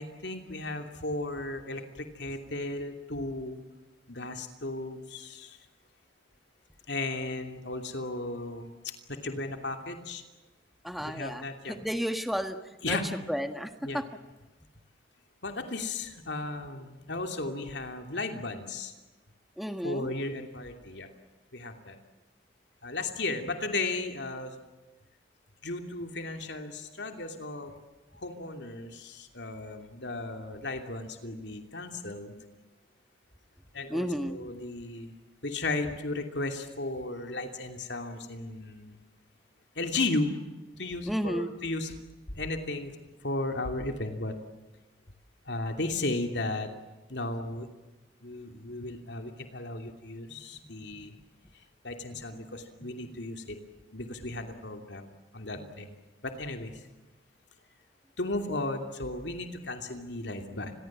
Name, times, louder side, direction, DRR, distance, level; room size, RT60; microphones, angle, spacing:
voice 1, 0.0-3.6 4.1-5.6 6.9-10.2 11.0-11.8 12.8-13.0 13.8-14.0 15.4-18.9 19.8-21.1 21.5-22.0 22.8-24.6 25.6-27.7 28.1-32.3 33.7-35.1 35.4-39.0 39.7-40.3 40.8-41.9 42.3-44.3 45.5-46.7 47.1-47.7 48.2-51.1 51.8-53.6 53.9-55.9 56.2-56.8 58.2-60.7, left 2 dB, 70° left, 5 dB, 2.9 m, -35 dB
voice 2, 10.8-14.1 19.6-20.1 33.9-34.4 41.0-41.6 50.3-50.4 52.1-52.2 52.8-52.9, equal, ahead, 7 dB, 1.7 m, -33 dB
29.5 x 22.5 x 7.5 m, 1.1 s
head